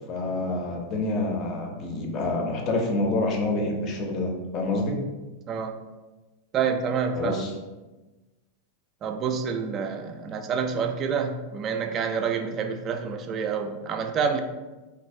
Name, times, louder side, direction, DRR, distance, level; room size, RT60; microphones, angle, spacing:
voice 1, 0.1-5.0 7.2-7.5, left 2 dB, 35° left, 2 dB, 0.6 m, -27 dB
voice 2, 5.5-5.8 6.5-7.5 9.0-14.4, right 6 dB, 30° right, 5 dB, 0.3 m, -28 dB
3.0 x 2.5 x 2.6 m, 1.1 s
figure-of-eight pair, 90°, 0 cm